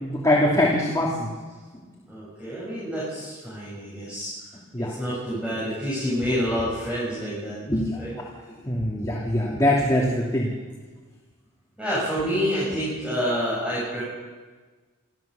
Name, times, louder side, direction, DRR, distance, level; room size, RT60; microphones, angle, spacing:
voice 1, 0.0-1.3 4.7-4.9 7.7-8.0 8.6-10.5, left 1 dB, 15° left, -4 dB, 2.8 m, -23 dB
voice 2, 2.1-4.3 4.8-7.6 8.0-8.1 11.8-14.0, equal, 5° right, -8 dB, 7.9 m, -28 dB
26.5 x 14.5 x 6.9 m, 1.3 s
head